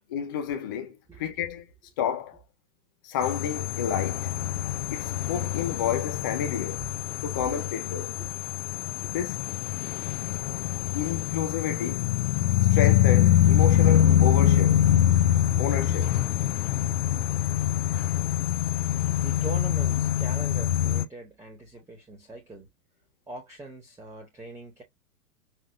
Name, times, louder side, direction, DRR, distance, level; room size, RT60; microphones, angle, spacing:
voice 1, 0.1-1.7 2.0-2.4 3.0-4.3 4.9-6.9 7.2-8.2 9.1-9.4 10.9-12.1 12.7-14.9 15.6-16.2, left 8 dB, 15° left, 0.4 m, -30 dB
sound 1, 3.2-21.1, left 11 dB, 45° left, 0.9 m, -24 dB
voice 2, 19.2-22.7 23.3-24.8, right 3 dB, 5° right, 1.4 m, -42 dB
6.0 x 3.4 x 2.6 m
figure-of-eight pair, 105°, 49 cm